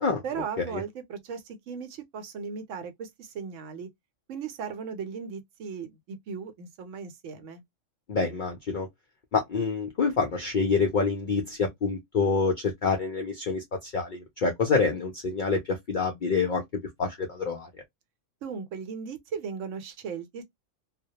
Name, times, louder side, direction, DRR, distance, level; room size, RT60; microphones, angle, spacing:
voice 1, 0.2-3.9 4.3-7.6 18.4-20.4, right 6 dB, 75° right, 1.0 m, -37 dB
voice 2, 8.1-8.9 9.3-16.6 17.0-17.7, left 4 dB, 70° left, 0.4 m, -27 dB
2.2 x 2.0 x 2.7 m
omnidirectional pair, 1.3 m